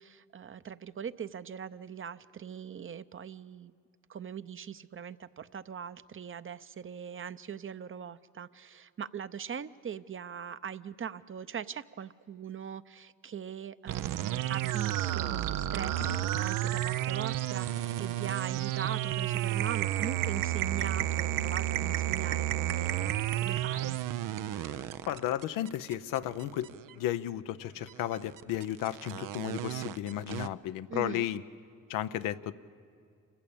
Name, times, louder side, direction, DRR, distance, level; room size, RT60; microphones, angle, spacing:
voice 1, 0.0-3.7 4.1-24.0 30.9-31.3, right 8 dB, 40° right, 14 dB, 0.7 m, -41 dB
sound 1, 13.9-26.9 27.9-30.5, right 13 dB, 85° right, 0.6 m, -32 dB
voice 2, 25.1-31.4 31.9-32.5, left 12 dB, 90° left, 12 dB, 0.6 m, -34 dB
27.0 x 15.5 x 8.7 m, 2.3 s
supercardioid pair, 65°, 32 cm